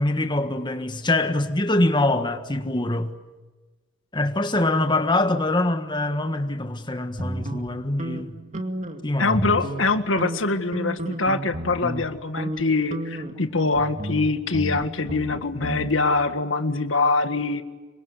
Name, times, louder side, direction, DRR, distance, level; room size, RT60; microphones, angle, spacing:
voice 1, 0.0-3.1 4.1-8.3 9.0-9.5, left 2 dB, 25° left, 1.5 m, -24 dB
sound 1, 7.2-9.0 9.3-9.9 10.2-12.1 12.4-12.6 12.9-15.9, right 1 dB, 40° right, 2.3 m, -32 dB
voice 2, 9.2-17.6, left 3 dB, 80° left, 1.9 m, -24 dB
27.0 x 23.5 x 8.3 m
head